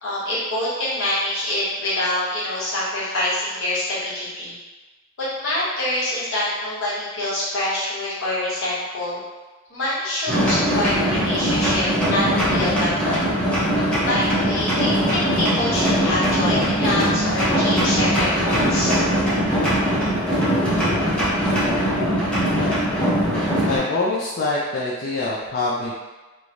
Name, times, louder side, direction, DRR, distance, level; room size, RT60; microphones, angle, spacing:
voice 1, 0.0-4.5 5.2-9.2 9.7-13.3 14.1-19.0, left 1 dB, 75° left, -9 dB, 1.1 m, -25 dB
sound 1, 10.3-23.8, equal, 5° left, 0.8 m, -21 dB
voice 2, 23.6-25.9, left 2 dB, 50° left, -6 dB, 0.3 m, -24 dB
3.0 x 2.1 x 2.5 m, 1.2 s
head